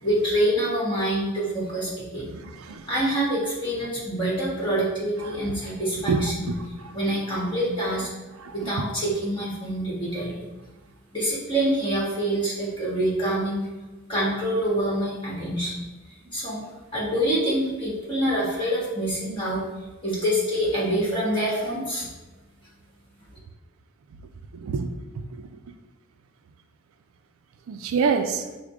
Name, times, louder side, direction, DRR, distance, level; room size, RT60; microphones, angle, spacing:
voice 1, 0.0-2.3 2.9-6.5 6.9-8.1 8.5-10.4 11.1-13.7 14.1-15.7 16.3-16.6 16.9-19.6 20.0-22.1, right 1 dB, 20° left, -6 dB, 1.4 m, -26 dB
voice 2, 2.3-2.8 6.1-6.5 8.4-8.7 24.6-24.9 27.7-28.4, right 5 dB, 75° right, 7 dB, 0.4 m, -26 dB
4.9 x 2.1 x 4.6 m, 1.2 s
head